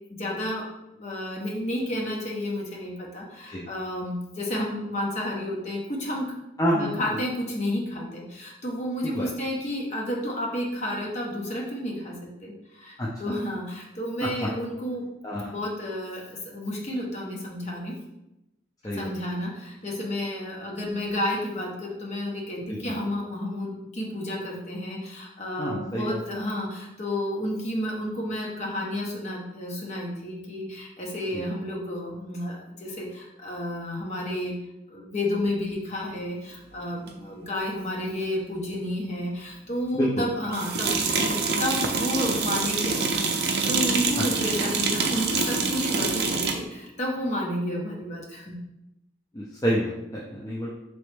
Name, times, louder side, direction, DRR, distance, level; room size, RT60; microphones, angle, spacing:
voice 1, 0.1-0.7 0.9-6.3 6.7-15.1 15.4-17.9 18.9-34.6 34.9-40.9 41.2-48.6, left 1 dB, 35° left, -2 dB, 0.8 m, -31 dB
voice 2, 6.6-6.9 9.0-9.3 13.0-13.1 14.2-14.3 15.2-15.5 18.8-19.1 22.7-22.9 25.6-26.2 31.3-31.5 39.9-40.3 44.2-44.3 49.3-50.7, equal, 20° left, -5 dB, 0.4 m, -28 dB
sound 1, 37.1-37.2 40.5-46.6, right 4 dB, 55° right, 0.5 m, -26 dB
4.2 x 3.0 x 3.3 m, 0.92 s
head